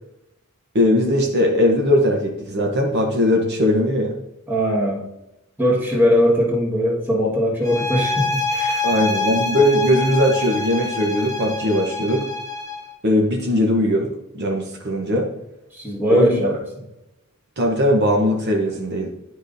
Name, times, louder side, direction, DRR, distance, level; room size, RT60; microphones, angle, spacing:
voice 1, 0.7-4.1 8.8-12.3 13.0-15.3 16.1-16.4 17.6-19.1, left 1 dB, 50° right, 1 dB, 0.8 m, -19 dB
voice 2, 4.5-5.1 5.6-8.8 15.7-16.6, equal, 10° right, -4 dB, 1.5 m, -20 dB
sound 1, 7.6-12.9, left 3 dB, 15° left, 0.8 m, -26 dB
10.5 x 5.0 x 2.6 m, 0.92 s
head